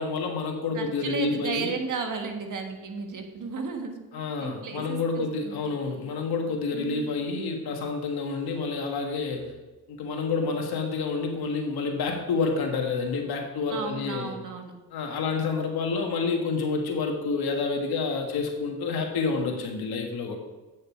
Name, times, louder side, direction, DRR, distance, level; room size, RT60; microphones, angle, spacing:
voice 1, 0.0-1.7 4.1-9.5 9.9-14.3 14.9-20.4, left 4 dB, 75° left, 2 dB, 1.7 m, -29 dB
voice 2, 0.7-5.5 6.7-7.2 13.7-14.7, right 5 dB, 55° right, 4 dB, 1.6 m, -34 dB
8.7 x 6.4 x 4.6 m, 1.2 s
cardioid pair, 75°, 38 cm